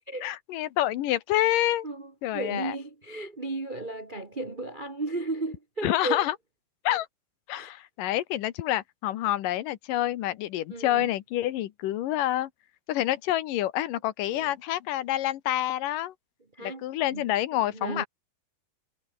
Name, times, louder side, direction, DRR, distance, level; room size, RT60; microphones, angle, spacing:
voice 1, 0.2-1.9 2.2-2.8 5.8-6.4 6.8-7.1 7.5-12.5 12.9-16.1 16.6-18.1, left 13 dB, 90° left, 2.8 m, -28 dB
voice 2, 1.8-6.2 7.5-7.7 10.7-11.1 14.3-14.5 16.5-18.0, right 2 dB, 75° right, 0.4 m, -35 dB
omnidirectional pair, 3.8 m